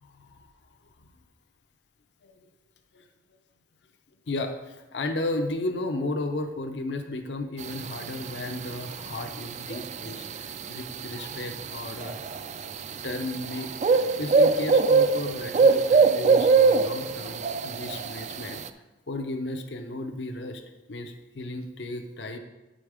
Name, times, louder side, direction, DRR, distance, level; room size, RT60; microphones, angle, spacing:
voice 1, 0.0-0.4 2.2-2.5 2.9-3.0 4.3-12.2 13.0-18.6 19.1-20.6 20.9-22.4, left 2 dB, 70° left, 5 dB, 0.7 m, -34 dB
sound 1, 7.6-18.7, right 4 dB, 40° right, 0.3 m, -24 dB
8.7 x 5.1 x 4.9 m, 1.1 s
head